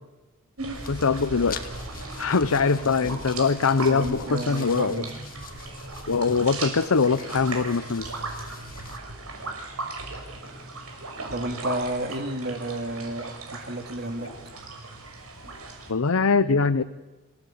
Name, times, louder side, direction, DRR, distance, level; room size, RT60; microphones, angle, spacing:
sound 1, 0.6-15.9, right 3 dB, 85° right, 6.0 m, -37 dB
sound 2, 0.7-9.0, left 8 dB, 40° left, 1.7 m, -46 dB
voice 1, 0.9-1.7 2.2-5.0 6.1-8.1 15.9-16.8, left 4 dB, 70° left, 12 dB, 0.7 m, -22 dB
voice 2, 3.9-5.1 11.3-14.3, right 1 dB, 50° right, 6 dB, 2.6 m, -31 dB
27.0 x 17.0 x 8.7 m, 1.2 s
head